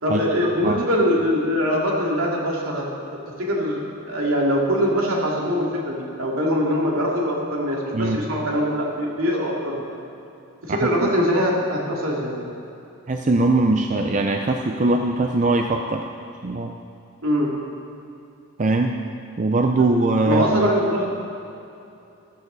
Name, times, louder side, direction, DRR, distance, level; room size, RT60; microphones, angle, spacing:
voice 1, 0.0-9.8 10.6-12.4 17.2-17.5 20.2-21.3, equal, 70° right, -3 dB, 2.5 m, -23 dB
voice 2, 7.9-8.3 10.7-11.1 13.1-16.1 16.4-16.7 18.6-19.0 19.4-20.7, right 2 dB, 35° right, 4 dB, 0.5 m, -21 dB
14.0 x 13.0 x 4.0 m, 2.7 s
head